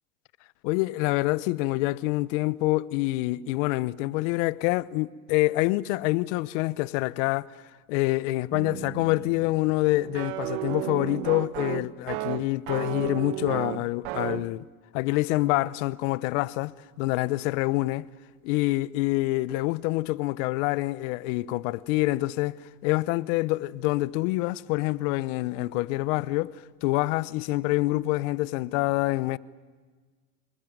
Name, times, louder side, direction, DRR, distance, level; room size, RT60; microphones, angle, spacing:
voice 1, 0.6-7.5 7.9-14.6 14.9-18.1 18.4-22.6 22.8-26.5 26.8-29.4, left 20 dB, 75° left, 0.9 m, -26 dB
sound 1, 8.5-14.5, right 16 dB, 75° right, 1.2 m, -34 dB
27.0 x 20.5 x 9.3 m
supercardioid pair, 110°, 38 cm